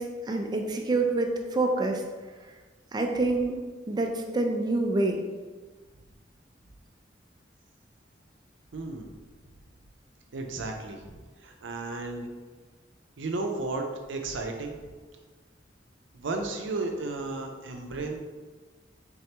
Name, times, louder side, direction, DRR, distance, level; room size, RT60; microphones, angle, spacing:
voice 1, 0.0-2.0 2.9-3.6 3.9-5.2, right 2 dB, 25° right, 2 dB, 0.4 m, -27 dB
voice 2, 8.7-9.1 10.3-12.3 13.2-14.8 16.1-18.2, right 3 dB, 85° right, 3 dB, 0.5 m, -34 dB
3.5 x 3.3 x 2.9 m, 1.4 s
head